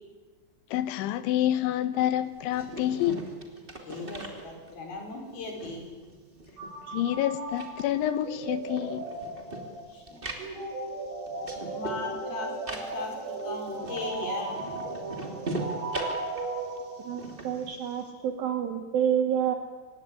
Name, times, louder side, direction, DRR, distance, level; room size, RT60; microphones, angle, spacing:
voice 1, 0.7-3.2 6.9-9.0, left 12 dB, 80° left, 12 dB, 3.3 m, -28 dB
sound 1, 2.3-5.0 5.3-7.2 7.5-18.1, right 2 dB, 15° right, 1.9 m, -40 dB
voice 2, 3.8-5.8 9.9-10.5 11.7-14.6, left 3 dB, 50° left, 2 dB, 6.5 m, -38 dB
sound 2, 6.6-17.3, right 2 dB, 90° right, 8.5 m, -36 dB
voice 3, 17.0-19.5, right 9 dB, 65° right, 5 dB, 2.4 m, -28 dB
24.5 x 19.5 x 9.9 m, 1.3 s
omnidirectional pair, 5.6 m